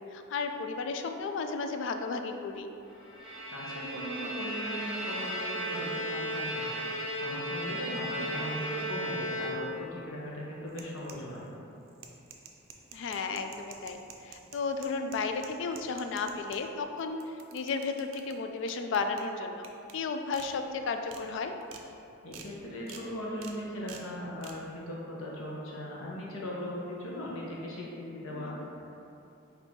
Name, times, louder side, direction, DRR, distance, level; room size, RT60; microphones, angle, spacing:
voice 1, 0.1-2.7 8.4-8.7 12.9-17.2 17.5-19.7 19.9-21.5 28.3-28.7, left 4 dB, 60° left, 6 dB, 0.3 m, -34 dB
Bowed string instrument, 3.0-10.0, equal, ahead, 0.8 m, -35 dB
voice 2, 3.5-6.8 7.1-11.5 22.2-28.8, equal, 85° left, -5 dB, 0.9 m, -39 dB
sound 1, 10.7-11.5 11.9-16.6 17.0-18.3 18.7-19.2 19.6-19.9 20.3-20.5 20.9-21.2 21.6-21.8 22.3-22.5 22.9-23.0 23.4-23.6 23.9-24.0 24.4-24.6, right 7 dB, 80° right, 0.5 m, -48 dB
4.3 x 2.7 x 4.4 m, 2.8 s
head